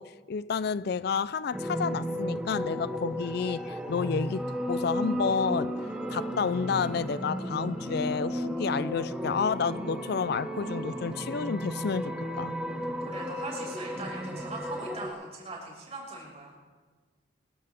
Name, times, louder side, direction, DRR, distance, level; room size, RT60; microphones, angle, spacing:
voice 1, 0.0-5.8 6.1-12.5, left 5 dB, 60° left, 0.4 m, -30 dB
sound 1, 1.5-15.1, equal, 5° right, 1.4 m, -34 dB
voice 2, 12.9-16.6, right 2 dB, 35° right, 5.7 m, -41 dB
24.5 x 15.5 x 3.5 m
head